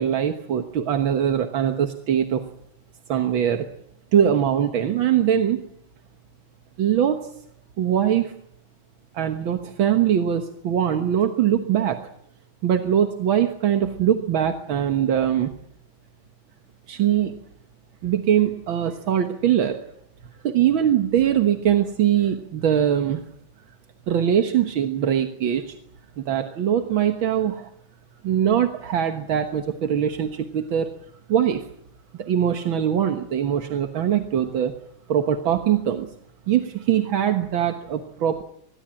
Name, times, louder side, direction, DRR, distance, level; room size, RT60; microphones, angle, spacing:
voice 1, 0.0-2.4 3.1-3.7 4.1-5.6 6.8-7.2 7.8-8.3 9.1-12.0 12.6-15.5 16.9-17.3 18.0-19.8 20.4-23.2 24.1-25.8 26.2-27.7 28.2-30.9 31.3-31.7 32.2-34.7 35.1-36.1 36.5-38.4, right 9 dB, 80° right, 7 dB, 2.1 m, -22 dB
25.0 x 21.0 x 8.9 m, 0.72 s
omnidirectional pair, 2.2 m